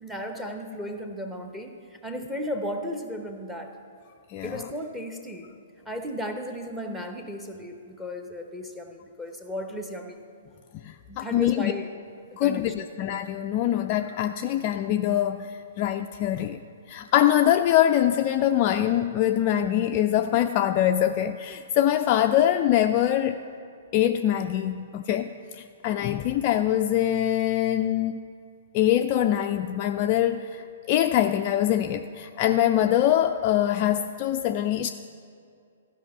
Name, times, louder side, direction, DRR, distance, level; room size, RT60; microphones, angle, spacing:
voice 1, 0.0-3.7 4.4-5.5 5.9-10.2 11.1-11.9 12.4-12.9, equal, 5° right, 4 dB, 0.9 m, -35 dB
voice 2, 4.3-4.7 10.8-11.7 12.4-15.5 15.8-16.6 16.9-23.4 23.9-28.1 28.7-34.9, left 11 dB, 35° left, 5 dB, 0.3 m, -23 dB
14.0 x 5.4 x 6.9 m, 2.4 s
figure-of-eight pair, 115°, 0 cm